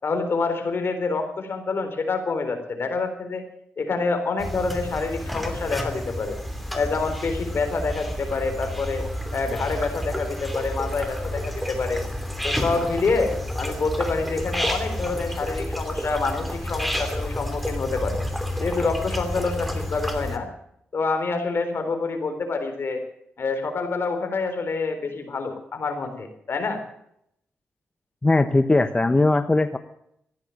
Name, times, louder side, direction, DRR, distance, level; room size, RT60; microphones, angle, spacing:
voice 1, 0.0-3.4 3.8-6.4 6.7-9.0 9.3-12.0 12.4-18.2 18.6-20.5 20.9-23.0 23.4-26.8, left 4 dB, 60° left, 6 dB, 3.9 m, -27 dB
sound 1, 4.4-20.4, left 1 dB, ahead, 2.8 m, -30 dB
voice 2, 28.2-29.8, left 2 dB, 20° left, 9 dB, 1.0 m, -19 dB
15.0 x 10.5 x 8.8 m, 0.74 s
cardioid pair, 70°, 4 cm